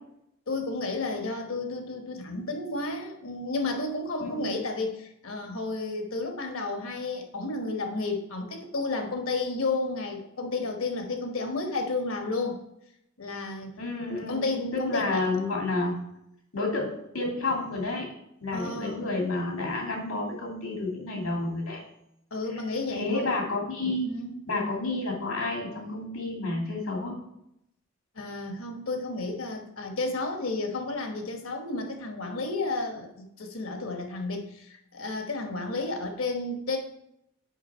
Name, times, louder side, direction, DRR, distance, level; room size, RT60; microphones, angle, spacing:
voice 1, 0.5-12.6 13.2-13.8 14.2-15.2 18.5-19.1 22.3-23.3 24.0-24.3 28.1-36.8, left 3 dB, 75° left, 4 dB, 1.2 m, -32 dB
voice 2, 4.2-4.5 13.8-16.0 16.5-18.1 18.4-21.8 22.5-22.6 22.9-24.2 24.5-27.2, left 2 dB, 90° left, 0 dB, 2.5 m, -30 dB
7.3 x 5.3 x 4.3 m, 0.80 s
head